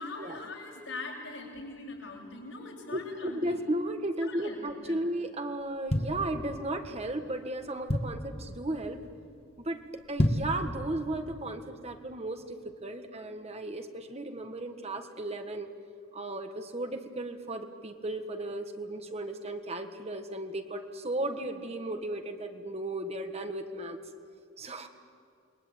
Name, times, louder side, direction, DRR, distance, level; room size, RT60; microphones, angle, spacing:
voice 1, 0.0-3.4 4.2-5.0, left 3 dB, 80° left, -1 dB, 7.6 m, -42 dB
voice 2, 2.9-9.0 9.7-9.8 10.1-15.7 16.1-24.0 24.6-24.9, right 1 dB, 35° right, 6 dB, 1.7 m, -35 dB
sound 1, 5.6-6.9 7.4-7.5 7.6-8.4 8.8-9.1 9.4-9.5 10.0-10.6 11.1-11.2, left 1 dB, 30° left, 1.8 m, -29 dB
29.0 x 21.5 x 9.1 m, 2.3 s
head